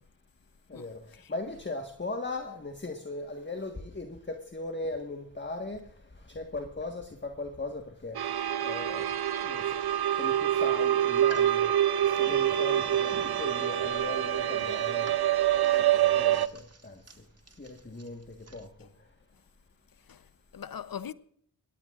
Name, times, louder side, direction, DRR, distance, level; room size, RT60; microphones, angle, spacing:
voice 1, 0.7-5.8 6.2-8.2 8.6-9.0 9.4-9.6 10.2-11.7 12.0-15.1 15.7-17.0 17.6-18.9, left 2 dB, 30° left, 1.6 m, -38 dB
sound 1, 8.1-16.5, right 11 dB, 70° right, 0.7 m, -26 dB
sound 2, 11.0-18.7, right 2 dB, 40° right, 1.7 m, -50 dB
voice 2, 20.0-21.1, left 8 dB, 60° left, 0.8 m, -41 dB
21.5 x 16.5 x 2.5 m
cardioid pair, 40°, 40 cm